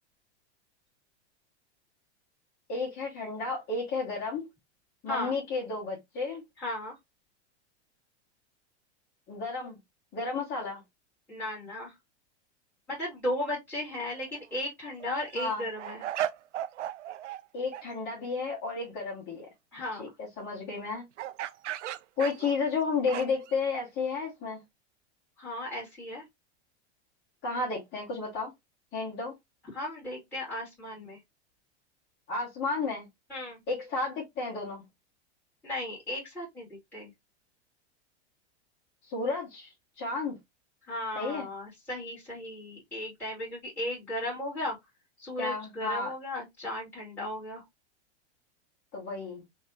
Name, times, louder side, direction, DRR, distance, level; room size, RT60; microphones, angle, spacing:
voice 1, 2.7-4.4 5.0-6.4 9.3-9.8 10.1-10.8 15.4-15.6 17.5-19.5 20.0-20.1 20.4-21.0 22.2-24.6 27.4-28.5 28.9-29.3 32.3-33.1 33.7-34.8 39.0-40.4 41.2-41.5 45.4-46.1 48.9-49.4, left 4 dB, 30° left, 1.7 m, -32 dB
voice 2, 6.6-6.9 11.3-11.9 12.9-16.1 19.7-20.0 25.4-26.2 29.7-31.2 33.3-33.6 35.6-37.1 40.9-44.8 45.2-47.6, left 1 dB, 5° left, 2.3 m, -36 dB
sound 1, 14.2-14.4 14.9-17.4 17.7-17.9 21.2-23.5, right 12 dB, 90° right, 0.5 m, -36 dB
3.5 x 3.2 x 2.8 m
hypercardioid pair, 130°, 35 cm